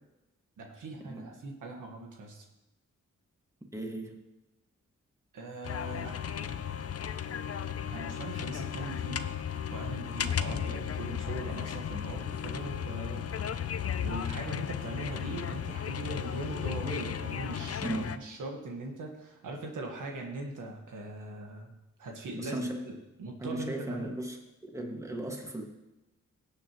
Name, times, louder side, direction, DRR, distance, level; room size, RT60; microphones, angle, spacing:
voice 1, 0.6-2.4 5.3-6.2 7.9-9.3 9.7-13.6 14.0-21.7 22.0-24.1, right 2 dB, 90° right, 1 dB, 1.6 m, -40 dB
voice 2, 3.7-4.2 17.8-18.2 22.3-22.9 23.4-25.7, right 1 dB, 10° right, 2 dB, 1.9 m, -37 dB
sound 1, 5.6-18.2, left 8 dB, 50° left, 0.6 m, -35 dB
17.0 x 7.6 x 3.1 m, 1.0 s
cardioid pair, 50°, 30 cm